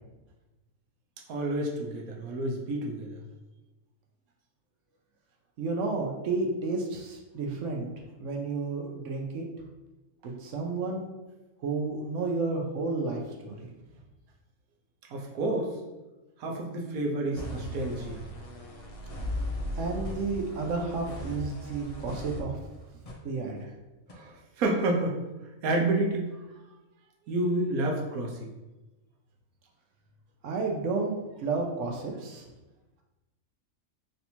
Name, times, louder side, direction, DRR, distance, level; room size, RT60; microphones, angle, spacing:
voice 1, 1.3-3.2 15.1-15.7 16.4-18.2 24.1-25.2 25.6-26.3 27.3-28.5, right 2 dB, 90° right, 1 dB, 1.2 m, -29 dB
voice 2, 5.6-7.9 8.2-9.5 10.2-11.0 11.6-13.7 19.7-22.6 23.2-23.7 30.4-32.5, right 3 dB, 65° right, 1 dB, 0.9 m, -31 dB
sound 1, 17.3-23.1 23.6-23.7 24.1-24.2, left 1 dB, 45° left, 0.5 m, -37 dB
3.3 x 2.7 x 4.3 m, 1.1 s
omnidirectional pair, 1.5 m